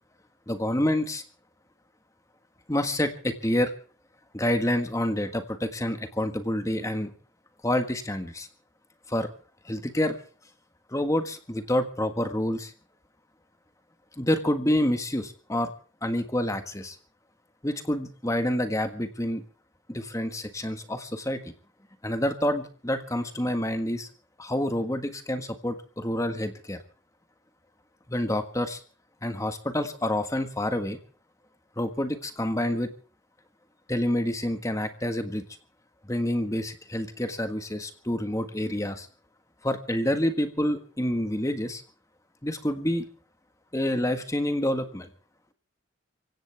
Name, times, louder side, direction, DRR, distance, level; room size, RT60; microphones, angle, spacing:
voice 1, 0.5-1.2 2.7-3.7 4.3-7.1 7.6-8.5 9.1-9.3 9.6-10.2 10.9-12.7 14.2-15.7 16.0-17.0 17.6-19.4 19.9-21.5 22.0-24.1 24.4-26.8 28.1-28.8 29.2-31.0 31.8-32.9 33.9-35.4 36.0-39.1 39.6-41.8 42.4-43.0 43.7-45.1, left 1 dB, 15° left, 8 dB, 1.6 m, -28 dB
25.0 x 16.5 x 3.5 m, 0.40 s
head